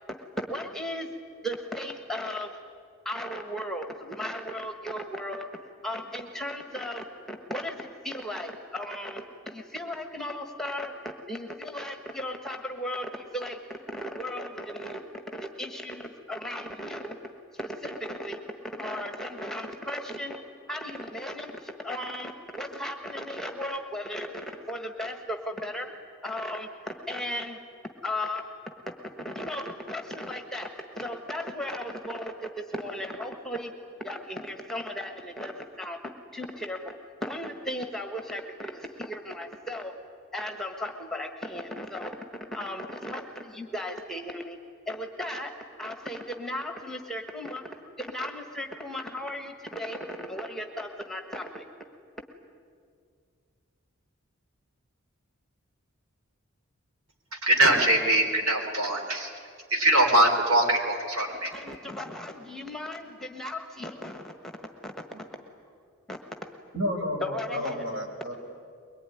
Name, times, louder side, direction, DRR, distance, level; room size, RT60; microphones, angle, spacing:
voice 1, 0.2-1.1 1.4-2.6 3.0-5.5 5.8-13.6 13.9-15.0 15.3-17.2 17.5-18.4 18.8-20.4 20.7-25.9 26.2-27.6 28.0-28.4 29.2-33.7 34.0-36.0 36.3-39.9 40.3-42.2 42.5-44.6 44.9-45.5 45.8-47.6 48.0-51.6 61.5-64.3 64.8-65.1 66.1-66.2 67.2-67.9, left 1 dB, ahead, 5 dB, 1.4 m, -36 dB
voice 2, 57.3-59.3 59.7-61.5, right 1 dB, 85° right, 3 dB, 3.8 m, -22 dB
voice 3, 66.7-68.3, equal, 60° right, 1 dB, 5.0 m, -31 dB
22.5 x 22.0 x 9.9 m, 2.2 s
head